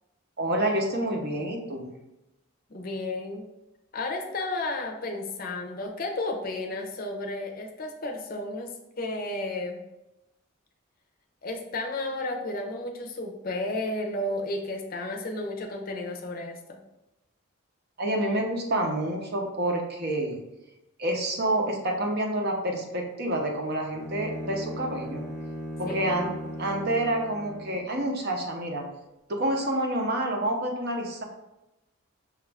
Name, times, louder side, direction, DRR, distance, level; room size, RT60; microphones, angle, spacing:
voice 1, 0.4-1.9 18.0-20.4 21.0-25.2 25.8-26.3 26.6-28.9 29.3-31.2, right 1 dB, 50° right, 2 dB, 0.7 m, -28 dB
voice 2, 2.7-3.4 3.9-9.8 11.4-16.8 25.9-26.0, left 2 dB, 40° left, 2 dB, 0.5 m, -32 dB
Bowed string instrument, 23.9-28.0, equal, 15° left, 0.8 m, -37 dB
5.9 x 2.4 x 3.3 m, 0.95 s
head